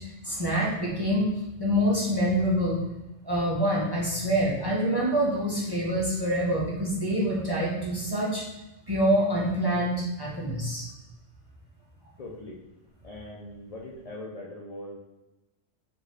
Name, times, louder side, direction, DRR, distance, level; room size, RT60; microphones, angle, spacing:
voice 1, 0.2-1.3 1.6-2.8 3.2-8.4 8.9-10.8, equal, 25° right, -6 dB, 0.6 m, -26 dB
voice 2, 12.2-12.6 13.0-15.0, left 1 dB, 55° left, -3 dB, 0.4 m, -41 dB
4.6 x 2.6 x 3.2 m, 1.0 s
omnidirectional pair, 1.3 m